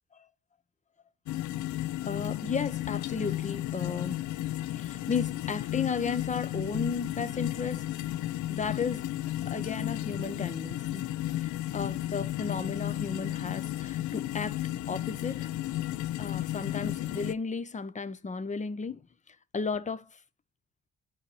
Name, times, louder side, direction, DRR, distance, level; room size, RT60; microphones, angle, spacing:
sound 1, 1.3-17.3, left 14 dB, 80° left, 0.5 m, -33 dB
voice 1, 2.0-4.2 4.7-7.9 8.5-9.1 9.4-11.1 11.4-14.6 14.9-15.5 16.2-19.0 19.5-20.2, left 5 dB, 25° left, 0.6 m, -34 dB
10.5 x 4.3 x 3.1 m
cardioid pair, 90°, 30 cm